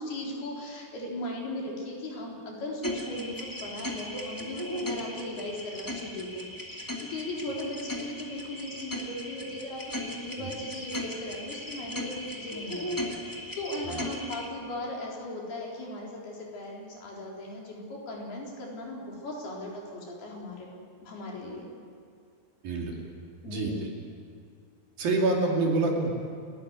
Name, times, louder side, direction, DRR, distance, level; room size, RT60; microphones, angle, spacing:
voice 1, 0.0-20.7 21.0-21.7 23.4-23.8, left 1 dB, 65° left, -2 dB, 6.0 m, -38 dB
sound 1, 2.8-14.5, left 1 dB, 10° left, 1.0 m, -37 dB
voice 2, 22.6-23.0 23.5-23.7 25.0-26.1, right 2 dB, 60° right, -1 dB, 4.5 m, -27 dB
29.0 x 13.0 x 9.6 m, 2.3 s
omnidirectional pair, 4.8 m